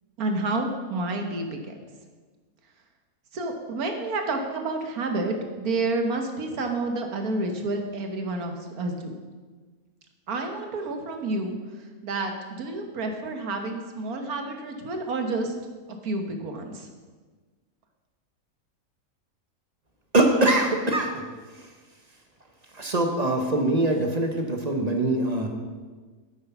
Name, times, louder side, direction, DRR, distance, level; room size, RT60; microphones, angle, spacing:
voice 1, 0.2-1.7 3.3-9.2 10.3-11.6 12.0-15.5 16.0-16.9, right 2 dB, 80° right, 4 dB, 1.7 m, -29 dB
voice 2, 20.1-21.2 22.7-25.5, right 2 dB, 30° right, 3 dB, 1.1 m, -23 dB
9.3 x 8.5 x 5.9 m, 1.4 s
omnidirectional pair, 1.5 m